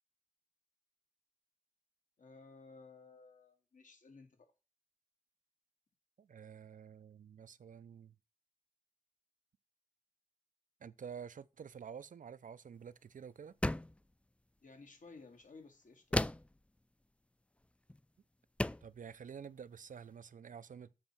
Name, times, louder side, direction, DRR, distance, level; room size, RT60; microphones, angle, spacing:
voice 1, 2.2-4.5 14.6-16.3, left 4 dB, 85° left, 2.0 m, -57 dB
voice 2, 6.2-8.1 10.8-13.5 18.8-20.9, right 7 dB, 90° right, 0.5 m, -49 dB
sound 1, 13.6-14.0 16.1-16.6 17.9-18.0 18.6-18.9, left 1 dB, 10° left, 0.3 m, -34 dB
7.7 x 4.3 x 6.1 m
cardioid pair, 55°, 13 cm